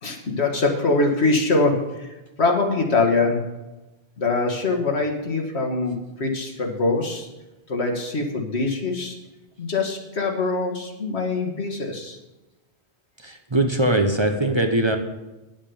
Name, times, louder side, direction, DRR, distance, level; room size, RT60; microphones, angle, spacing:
voice 1, 0.0-3.4 4.2-7.3 7.7-9.2 9.6-12.2, left 3 dB, 85° left, 2 dB, 1.9 m, -23 dB
voice 2, 13.2-15.0, right 1 dB, 30° right, 5 dB, 0.8 m, -21 dB
9.6 x 7.4 x 7.0 m, 1.1 s
omnidirectional pair, 1.1 m